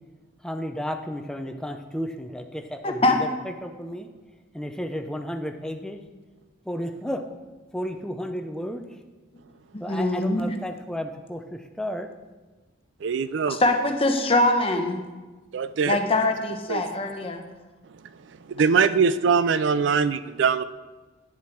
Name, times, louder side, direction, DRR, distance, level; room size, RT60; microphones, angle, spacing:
voice 1, 0.4-4.1 4.5-6.0 6.6-7.2 7.7-8.9 9.8-12.1, equal, 5° left, 0.5 m, -33 dB
voice 2, 2.8-3.2 9.7-10.5 13.5-15.0 15.8-17.4, left 2 dB, 30° left, 0.9 m, -23 dB
voice 3, 13.0-13.6 15.5-16.0 16.7-16.8 18.5-20.6, right 5 dB, 65° right, 0.4 m, -22 dB
10.5 x 7.3 x 4.5 m
head